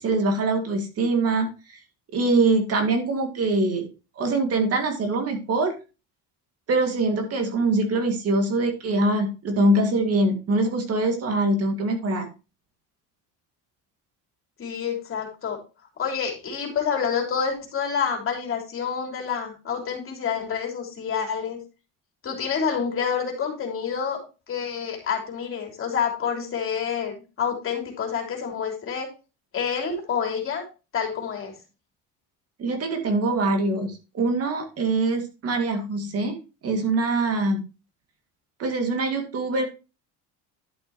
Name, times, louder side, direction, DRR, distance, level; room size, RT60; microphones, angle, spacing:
voice 1, 0.0-1.8 2.1-3.9 4.2-5.8 6.7-12.3 32.6-36.4 36.6-37.6 38.6-39.6, right 2 dB, 45° right, 5 dB, 2.1 m, -23 dB
voice 2, 14.6-15.6 16.0-21.6 22.2-24.2 24.5-29.1 29.5-30.6 30.9-31.5, left 7 dB, 40° left, 2 dB, 3.3 m, -28 dB
11.5 x 6.8 x 3.0 m, 0.30 s
cardioid pair, 135°, 34 cm